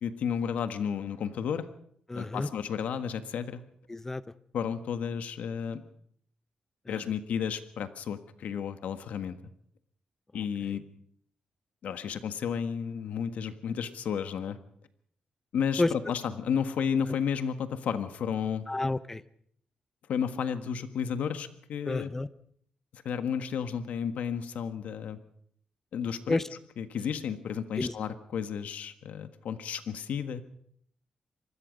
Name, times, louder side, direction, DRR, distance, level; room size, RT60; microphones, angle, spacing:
voice 1, 0.0-1.7 2.1-3.6 4.5-5.8 6.9-9.4 10.3-10.8 11.8-14.6 15.5-18.6 20.1-22.1 22.9-25.2 25.9-26.4 26.8-30.4, left 7 dB, 80° left, 10 dB, 1.5 m, -32 dB
voice 2, 2.1-2.5 3.9-4.2 6.9-7.0 10.3-10.4 15.8-15.9 18.7-19.2 21.8-22.3 26.3-26.5 27.8-27.9, left 2 dB, 15° left, 15 dB, 0.8 m, -30 dB
25.5 x 20.0 x 5.3 m, 0.65 s
cardioid pair, 125°, 2 cm